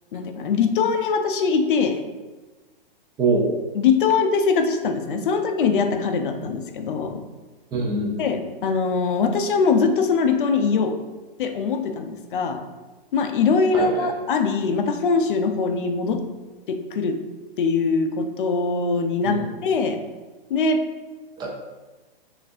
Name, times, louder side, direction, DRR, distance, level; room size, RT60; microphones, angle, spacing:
voice 1, 0.1-2.0 3.7-7.2 8.2-11.0 11.4-12.6 13.1-16.2 16.7-17.2 17.6-20.0 20.5-20.8, left 5 dB, 60° left, 6 dB, 0.5 m, -22 dB
voice 2, 3.2-3.5 7.7-8.3 13.7-14.1 19.2-19.4 21.4-21.5, right 3 dB, 15° right, -2 dB, 0.5 m, -24 dB
5.8 x 2.5 x 2.6 m, 1.2 s
hypercardioid pair, 135°, 29 cm